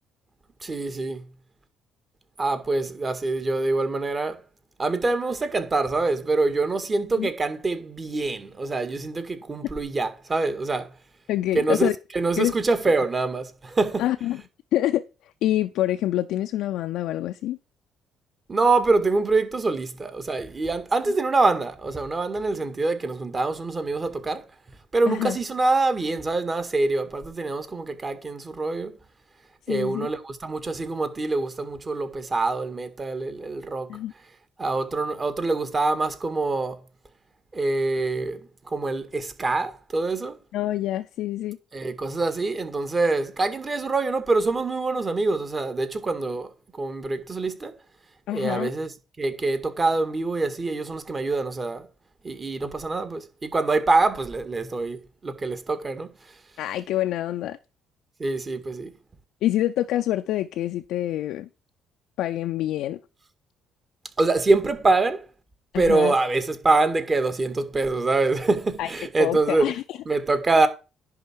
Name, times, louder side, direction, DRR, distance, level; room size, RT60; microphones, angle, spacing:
voice 1, 0.6-1.3 2.4-4.4 4.8-10.9 11.5-14.0 18.5-24.5 24.9-29.0 29.7-34.0 34.6-36.8 37.5-40.4 41.7-47.7 48.3-51.9 52.2-56.3 58.2-58.9 64.2-65.3 65.7-69.7 70.0-70.7, right 3 dB, 35° right, 1.9 m, -25 dB
voice 2, 11.3-11.9 12.4-12.5 14.0-14.4 14.7-17.6 25.1-25.4 29.7-30.1 33.9-34.1 40.5-41.6 48.3-48.7 56.6-57.6 59.4-61.5 62.2-63.0 65.7-66.1 68.8-68.9 69.2-70.0, left 13 dB, 70° left, 0.5 m, -26 dB
10.5 x 3.7 x 7.3 m
hypercardioid pair, 50°, 0 cm